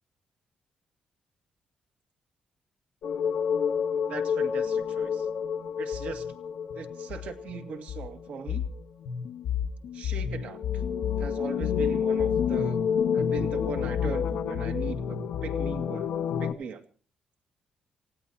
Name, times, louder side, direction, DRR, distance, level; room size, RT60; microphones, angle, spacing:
sound 1, 3.0-8.8 9.0-16.5, left 7 dB, 75° left, 1.5 m, -29 dB
voice 1, 4.1-5.3 5.8-6.3 6.8-8.6 9.9-10.6 11.2-12.8 13.1-16.1 16.4-16.8, right 6 dB, 70° right, 8 dB, 2.3 m, -39 dB
29.0 x 16.5 x 2.9 m, 0.39 s
cardioid pair, 125°, 2 cm